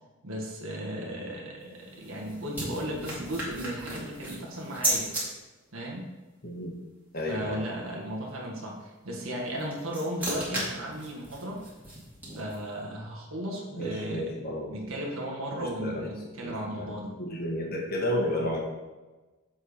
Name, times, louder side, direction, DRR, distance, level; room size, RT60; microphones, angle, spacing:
voice 1, 0.2-5.1 5.7-6.1 7.3-11.6 12.3-14.3 14.7-17.1, equal, 75° right, -1 dB, 1.6 m, -35 dB
sound 1, 1.6-5.2 9.4-12.7, right 1 dB, 10° right, 2.3 m, -35 dB
voice 2, 7.1-7.6 13.8-14.7 15.5-16.1 16.4-16.9 17.2-18.6, left 1 dB, 45° left, 0 dB, 1.4 m, -32 dB
7.3 x 4.5 x 5.0 m, 1.2 s
head